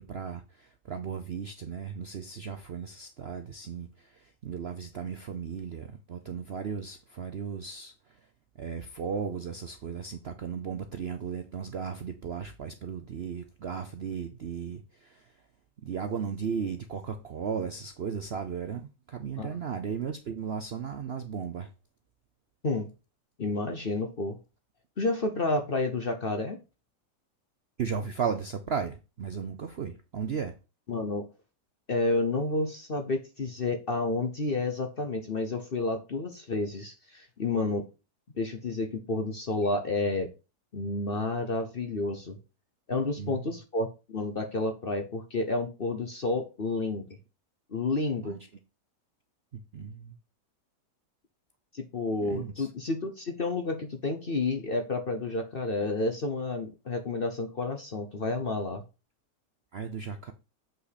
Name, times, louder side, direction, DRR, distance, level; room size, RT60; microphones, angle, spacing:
voice 1, 0.0-8.2 8.6-15.3 15.8-21.7 27.8-30.6 43.2-43.6 48.2-48.4 49.5-50.2 52.2-52.7 59.7-60.3, right 6 dB, 60° right, 0.7 m, -36 dB
voice 2, 23.4-24.4 25.0-26.6 30.9-31.2 31.9-37.8 38.4-40.3 40.7-42.4 42.9-47.1 47.7-48.4 51.7-58.8, left 3 dB, 40° left, 0.9 m, -30 dB
7.7 x 5.7 x 4.1 m
omnidirectional pair, 1.9 m